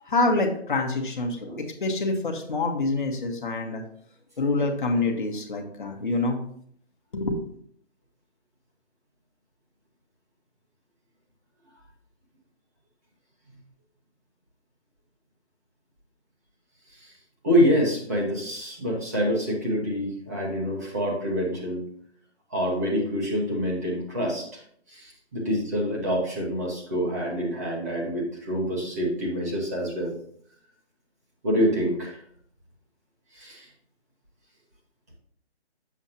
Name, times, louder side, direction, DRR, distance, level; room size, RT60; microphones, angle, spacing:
voice 1, 0.1-1.4 1.8-3.8 4.4-6.4 7.1-7.4, left 2 dB, 45° left, 2 dB, 1.4 m, -26 dB
voice 2, 17.4-21.8 22.5-24.6 24.9-30.1 31.4-32.2 33.3-33.7, equal, 15° right, -4 dB, 1.1 m, -26 dB
7.2 x 7.0 x 2.9 m, 0.63 s
hypercardioid pair, 170°, 33 cm